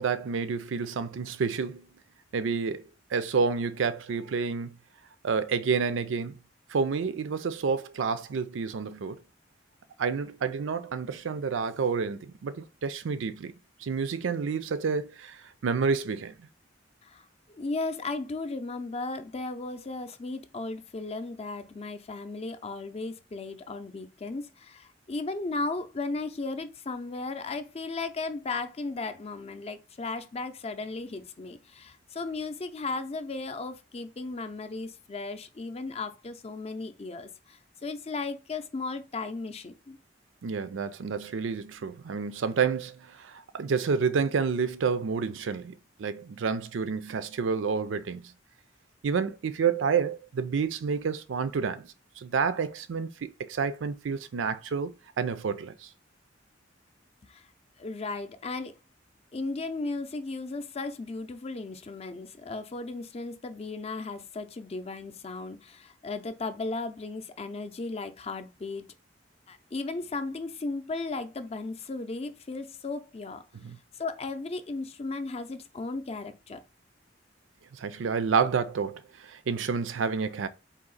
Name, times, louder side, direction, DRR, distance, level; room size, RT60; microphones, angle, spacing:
voice 1, 0.0-1.9 2.3-2.8 3.1-4.8 5.2-6.4 6.7-9.2 10.0-13.5 13.8-16.3 40.4-48.2 49.0-51.9 52.2-55.9 73.5-73.8 77.8-80.5, right 5 dB, 85° right, 0.4 m, -29 dB
voice 2, 17.0-40.0 57.2-57.5 57.8-58.8 59.3-68.8 69.5-73.4 73.9-76.6, left 3 dB, 35° left, 0.5 m, -35 dB
4.0 x 2.8 x 3.9 m
head